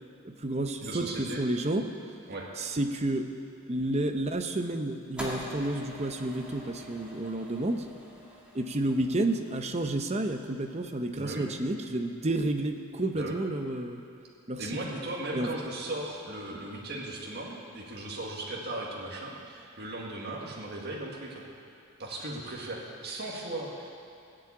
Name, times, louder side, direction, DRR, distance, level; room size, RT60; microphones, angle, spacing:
voice 1, 0.2-1.9 2.6-3.3 3.7-7.9 8.5-14.0 14.5-14.8 15.3-15.5, right 1 dB, 30° right, 6 dB, 0.7 m, -30 dB
voice 2, 0.8-1.4 2.3-2.5 11.1-11.5 13.1-13.4 14.6-21.4 22.0-23.9, right 1 dB, 45° right, -3 dB, 1.9 m, -37 dB
sound 1, 5.2-11.5, equal, 5° right, 2.1 m, -45 dB
16.5 x 7.4 x 8.7 m, 2.5 s
head